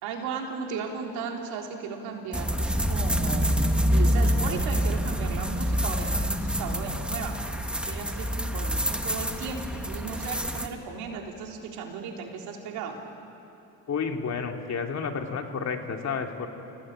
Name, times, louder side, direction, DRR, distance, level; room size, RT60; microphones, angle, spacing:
voice 1, 0.0-13.0, right 5 dB, 85° right, 1 dB, 3.6 m, -36 dB
sound 1, 2.3-10.7, equal, 5° right, 1.7 m, -26 dB
voice 2, 13.9-16.5, left 5 dB, 45° left, 3 dB, 2.8 m, -31 dB
28.5 x 17.5 x 8.9 m, 2.8 s
cardioid pair, 90°, 36 cm